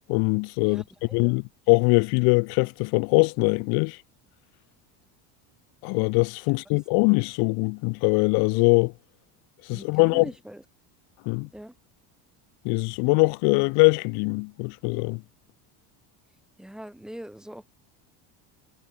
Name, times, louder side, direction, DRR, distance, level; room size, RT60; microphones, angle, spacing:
voice 1, 0.1-0.8 1.1-4.0 5.8-8.9 9.7-10.3 11.3-11.5 12.6-15.2, left 33 dB, 65° left, 0.7 m, -22 dB
voice 2, 0.6-1.4 6.5-6.6 9.7-10.6 11.5-11.7 16.6-17.6, equal, ahead, 2.9 m, -42 dB
cardioid pair, 170°, 41 cm